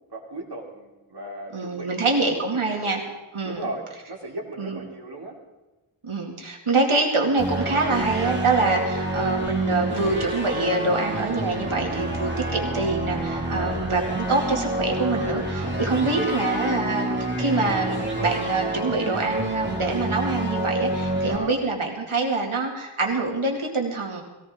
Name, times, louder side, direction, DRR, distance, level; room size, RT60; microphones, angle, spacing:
voice 1, 0.1-2.9 3.4-5.4 13.5-13.8 15.2-16.2 21.2-21.6, right 2 dB, 55° right, 0 dB, 2.8 m, -37 dB
voice 2, 1.5-3.0 3.3-3.6 4.6-4.8 6.0-24.2, right 3 dB, 85° right, 0 dB, 2.4 m, -25 dB
sound 1, 7.4-21.4, right 1 dB, 20° right, 2.2 m, -28 dB
18.0 x 16.5 x 3.7 m, 1.1 s
wide cardioid pair, 55°, 49 cm